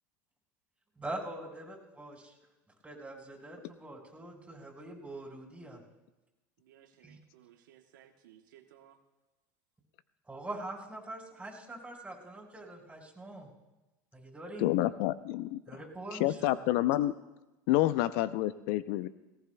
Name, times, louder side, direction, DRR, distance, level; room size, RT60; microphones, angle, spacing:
voice 1, 1.0-2.3 2.8-5.8 7.0-7.2 10.3-13.5 14.1-14.7 15.7-16.5, right 2 dB, 10° right, -1 dB, 4.6 m, -43 dB
voice 2, 6.6-9.0, right 11 dB, 80° right, 5 dB, 1.1 m, -59 dB
voice 3, 14.6-15.6 16.1-17.1 17.7-19.1, left 15 dB, 65° left, 15 dB, 0.5 m, -28 dB
18.5 x 18.0 x 2.3 m, 1.0 s
hypercardioid pair, 90°, 10 cm